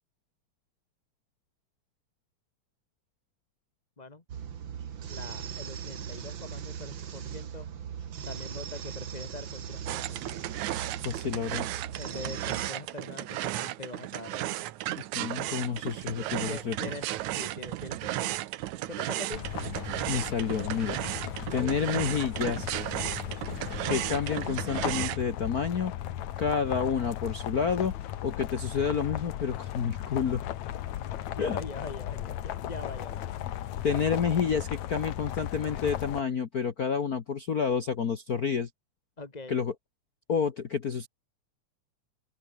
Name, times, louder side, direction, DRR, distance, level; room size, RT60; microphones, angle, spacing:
sound 1, 4.3-12.7, right 8 dB, 50° right, 1.9 m, -39 dB
voice 1, 5.1-7.7 8.2-10.4 12.0-14.4 16.2-18.3 18.9-19.5 21.5-22.0 31.3-33.4 39.2-39.6, left 3 dB, 20° left, 1.4 m, -43 dB
sound 2, 9.9-25.2, right 15 dB, 80° right, 2.3 m, -35 dB
voice 2, 11.0-11.7 15.1-16.8 20.1-21.0 21.5-22.7 23.9-25.9 26.4-27.9 28.2-30.4 31.4-31.6 33.8-38.7 39.5-39.7 40.3-41.1, left 6 dB, 55° left, 1.0 m, -29 dB
sound 3, 19.3-36.2, left 12 dB, 75° left, 2.6 m, -36 dB
omnidirectional pair, 3.4 m